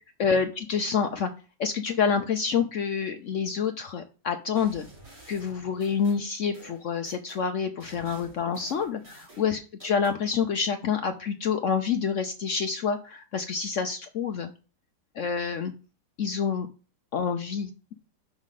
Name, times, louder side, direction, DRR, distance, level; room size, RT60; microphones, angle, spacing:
voice 1, 0.2-1.3 1.6-4.9 5.3-14.5 15.1-15.7 16.2-16.7 17.1-17.7, left 6 dB, 75° left, 6 dB, 0.7 m, -27 dB
sound 1, 4.6-7.4 7.8-10.2, right 2 dB, 65° right, 3.8 m, -50 dB
6.2 x 4.9 x 5.8 m, 0.34 s
omnidirectional pair, 2.0 m